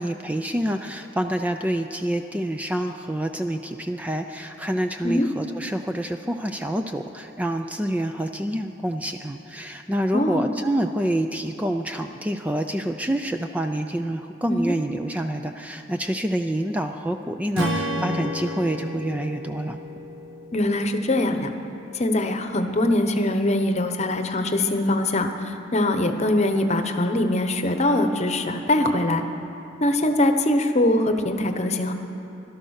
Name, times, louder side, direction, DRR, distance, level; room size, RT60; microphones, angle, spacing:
voice 1, 0.0-19.8, right 1 dB, 10° right, 6 dB, 0.4 m, -27 dB
voice 2, 10.1-10.5 14.5-14.8 20.5-21.5 21.9-29.2 29.8-31.9, left 1 dB, 35° left, 7 dB, 0.9 m, -22 dB
Strum, 17.5-21.8, equal, 85° right, 1.5 m, -31 dB
17.0 x 12.5 x 6.5 m, 2.9 s
head